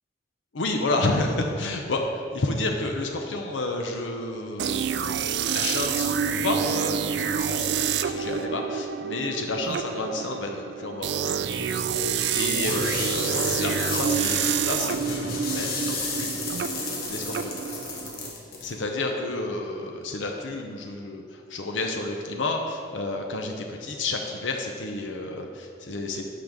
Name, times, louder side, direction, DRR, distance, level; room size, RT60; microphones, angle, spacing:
voice 1, 0.5-5.1 5.5-11.4 12.3-16.5 17.1-17.5 18.6-26.3, left 2 dB, 90° left, 2 dB, 0.7 m, -30 dB
sound 1, 4.6-18.3, right 7 dB, 70° right, 0.3 m, -28 dB
sound 2, 11.5-18.7, left 3 dB, 50° left, 1.2 m, -33 dB
5.9 x 5.1 x 6.1 m, 2.4 s
head